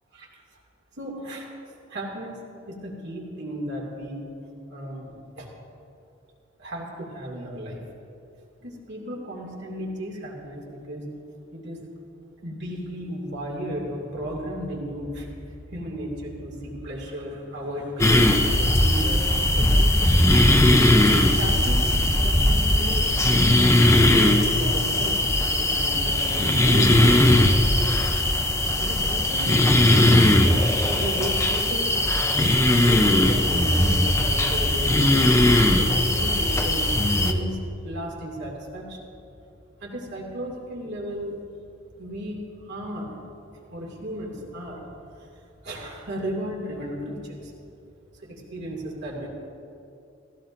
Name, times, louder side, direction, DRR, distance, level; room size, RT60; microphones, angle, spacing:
voice 1, 1.0-1.5 1.9-2.4 2.7-4.2 4.7-5.5 6.6-7.8 8.6-11.1 11.5-11.8 12.4-20.3 21.1-23.5 24.0-25.2 25.6-27.3 28.8-29.5 30.2-30.3 30.8-32.0 32.8-39.1 39.8-41.4 42.0-42.4 42.7-43.2 43.7-44.9 45.6-47.5 48.2-49.3, equal, 60° right, -2 dB, 2.5 m, -35 dB
sound 1, 18.0-37.3, left 1 dB, 15° left, 0.6 m, -19 dB
16.0 x 16.0 x 2.6 m, 2.6 s
head